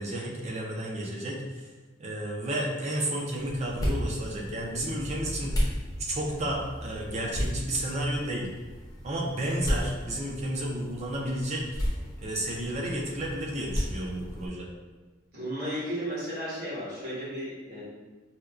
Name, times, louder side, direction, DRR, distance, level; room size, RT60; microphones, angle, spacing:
voice 1, 0.0-1.7 2.0-5.7 6.0-8.5 9.0-11.8 12.2-14.7, right 1 dB, 35° right, -2 dB, 0.5 m, -32 dB
sound 1, 3.3-14.5, equal, 15° left, 0.6 m, -34 dB
voice 2, 15.3-17.8, equal, 50° right, -8 dB, 1.3 m, -34 dB
4.2 x 2.2 x 2.4 m, 1.3 s
head